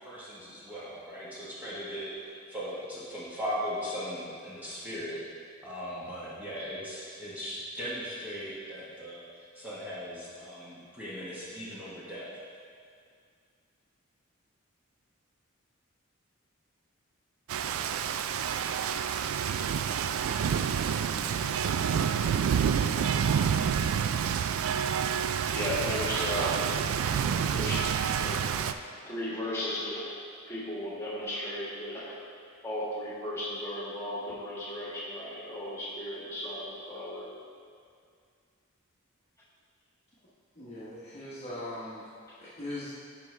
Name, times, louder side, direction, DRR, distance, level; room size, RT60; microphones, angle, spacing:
voice 1, 0.0-5.2 5.6-9.2 9.5-12.3, equal, 10° right, -10 dB, 1.2 m, -38 dB
Rain, 17.5-28.7, right 7 dB, 75° right, 0.3 m, -28 dB
voice 2, 25.4-26.9 27.6-27.8 28.2-28.4 29.0-30.1 30.5-32.2 32.6-37.3 42.3-42.4, left 1 dB, 15° left, -8 dB, 1.8 m, -35 dB
voice 3, 40.5-42.0 42.4-42.9, left 1 dB, 30° left, -9 dB, 1.0 m, -40 dB
9.5 x 5.1 x 3.2 m, 2.2 s
head